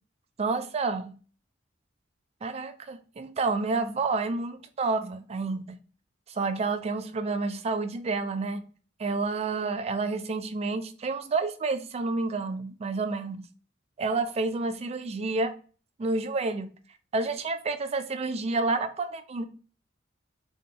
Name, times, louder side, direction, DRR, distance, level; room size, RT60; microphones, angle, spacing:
voice 1, 0.4-1.2 2.4-5.8 6.3-8.6 9.0-13.4 14.0-15.5 16.0-16.7 17.1-19.4, right 3 dB, 35° right, 0.4 m, -29 dB
3.7 x 2.1 x 3.8 m
head